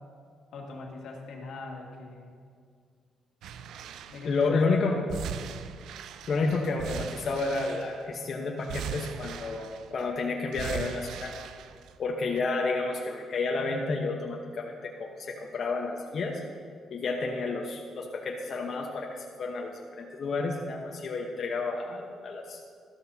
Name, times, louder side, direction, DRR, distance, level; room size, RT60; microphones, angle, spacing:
voice 1, 0.5-2.4 4.1-5.0 6.3-6.5, left 3 dB, 75° left, 0 dB, 1.9 m, -41 dB
sound 1, 3.4-4.4 5.1-8.2 8.6-10.0 10.5-12.0 12.4-12.5, right 8 dB, 80° right, 0.4 m, -40 dB
voice 2, 4.2-5.0 6.3-11.3 12.0-16.4 16.9-22.6, left 3 dB, 55° left, 0 dB, 1.1 m, -30 dB
13.0 x 13.0 x 2.8 m, 2.1 s
cardioid pair, 90°, 0 cm